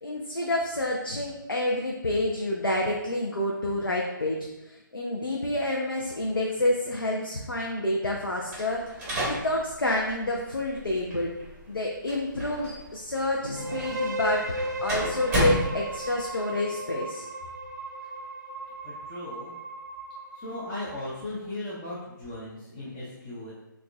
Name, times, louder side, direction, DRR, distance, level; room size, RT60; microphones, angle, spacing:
voice 1, 0.0-4.4 4.6-8.9 9.2-11.3 11.7-17.3, left 1 dB, 85° left, -1 dB, 0.5 m, -28 dB
sound 1, 8.5-16.3, equal, 10° right, 1.1 m, -33 dB
sound 2, 13.5-21.3, right 1 dB, 50° right, 0.5 m, -36 dB
voice 2, 18.8-19.5 20.3-23.5, left 1 dB, 20° left, -8 dB, 0.6 m, -37 dB
6.0 x 2.4 x 2.3 m, 0.97 s
figure-of-eight pair, 140°, 11 cm